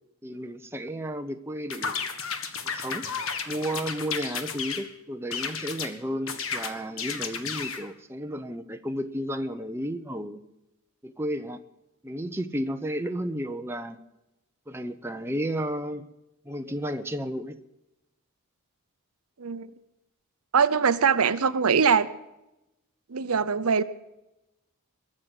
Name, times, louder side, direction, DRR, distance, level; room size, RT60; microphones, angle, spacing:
voice 1, 0.2-2.0 2.6-3.1 3.5-10.4 11.0-11.6 12.0-14.0 14.7-16.1 16.4-17.5, equal, 10° right, 7 dB, 0.7 m, -32 dB
sound 1, 1.7-4.9 5.3-5.9 6.3-7.8, left 6 dB, 65° left, 1.6 m, -33 dB
voice 2, 19.4-19.7 20.5-22.1 23.1-23.8, right 6 dB, 80° right, 13 dB, 0.8 m, -22 dB
22.5 x 7.5 x 8.2 m, 0.92 s
head